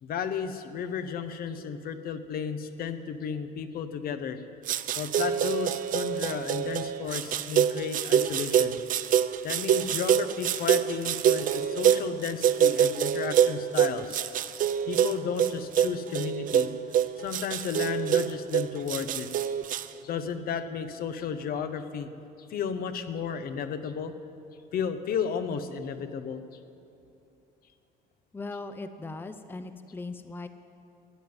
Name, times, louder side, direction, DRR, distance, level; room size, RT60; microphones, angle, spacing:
voice 1, 0.0-4.4 4.9-8.8 9.4-14.2 14.9-16.7 17.2-19.3 20.0-22.1 22.5-24.1 24.7-26.4, left 7 dB, 60° left, 9 dB, 0.9 m, -33 dB
sound 1, 4.7-19.9, right 9 dB, 55° right, 0.5 m, -26 dB
voice 2, 28.3-30.5, left 3 dB, 10° left, 9 dB, 0.6 m, -39 dB
13.5 x 7.8 x 9.5 m, 2.7 s
cardioid pair, 110°, 17 cm